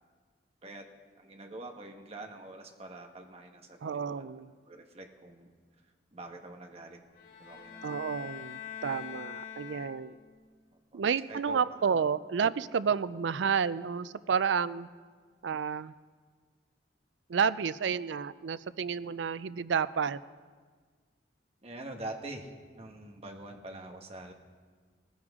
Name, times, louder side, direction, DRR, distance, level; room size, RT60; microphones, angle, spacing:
voice 1, 1.2-4.3 4.7-5.5 6.1-7.0 7.4-8.1 10.9-11.0 11.3-11.6 21.6-22.5 22.8-24.3, right 2 dB, 35° right, 3 dB, 1.4 m, -45 dB
voice 2, 3.8-4.5 7.8-10.2 10.9-14.9 15.4-15.9 17.3-20.2, right 6 dB, 90° right, 16 dB, 0.4 m, -30 dB
sound 1, 7.1-10.4, left 9 dB, 85° left, 4.4 m, -44 dB
18.5 x 14.5 x 3.7 m, 1.6 s
head